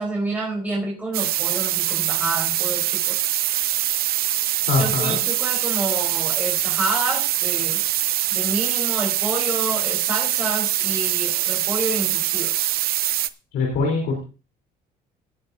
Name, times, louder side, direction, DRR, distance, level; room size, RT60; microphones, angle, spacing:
voice 1, 0.0-3.3 4.8-7.8 8.3-12.6, right 2 dB, 10° right, -3 dB, 4.5 m, -29 dB
sound 1, 1.1-13.3, right 13 dB, 65° right, 0.7 m, -23 dB
voice 2, 4.7-5.2 13.5-14.2, left 4 dB, 85° left, -1 dB, 3.9 m, -22 dB
18.0 x 9.0 x 2.7 m, 0.34 s
cardioid pair, 110°, 17 cm